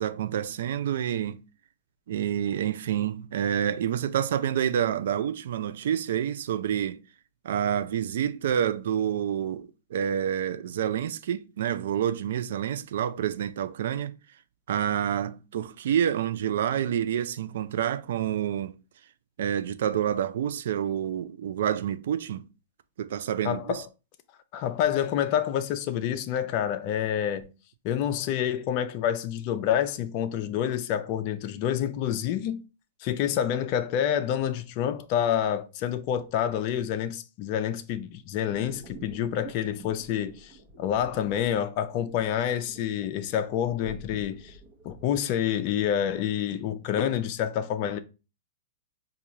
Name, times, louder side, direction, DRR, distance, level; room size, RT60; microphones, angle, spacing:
voice 1, 0.0-1.4 2.1-7.0 7.4-14.1 14.7-18.8 19.4-22.4 23.0-23.8, right 9 dB, 70° right, 0.4 m, -28 dB
voice 2, 23.4-23.8 24.5-27.5 27.8-32.6 33.0-40.5 40.8-44.6 44.8-48.0, left 10 dB, 45° left, 0.4 m, -28 dB
sound 1, 38.5-45.2, right 3 dB, 45° right, 0.8 m, -48 dB
4.8 x 2.3 x 2.8 m
hypercardioid pair, 120°, 0 cm